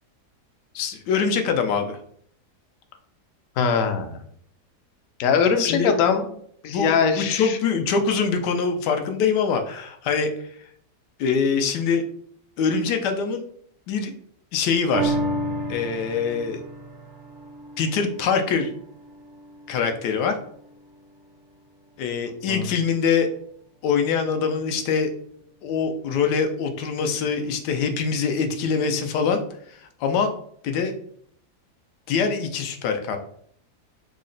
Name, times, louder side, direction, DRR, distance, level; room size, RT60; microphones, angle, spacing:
voice 1, 0.7-2.0 5.6-5.9 6.7-10.3 11.2-12.0 12.6-13.4 13.9-14.1 14.5-15.2 15.7-16.6 17.8-18.7 19.7-20.3 22.0-23.3 23.8-25.1 25.6-29.4 30.0-30.3 30.6-30.9 32.1-33.2, left 5 dB, 90° left, 6 dB, 1.2 m, -24 dB
voice 2, 3.6-4.2 5.2-6.2 6.6-7.6 22.5-22.6, left 6 dB, 70° left, 7 dB, 0.8 m, -21 dB
sound 1, 14.9-21.6 22.0-22.1, right 1 dB, 55° right, 0.7 m, -33 dB
3.8 x 2.1 x 3.8 m, 0.64 s
omnidirectional pair, 1.7 m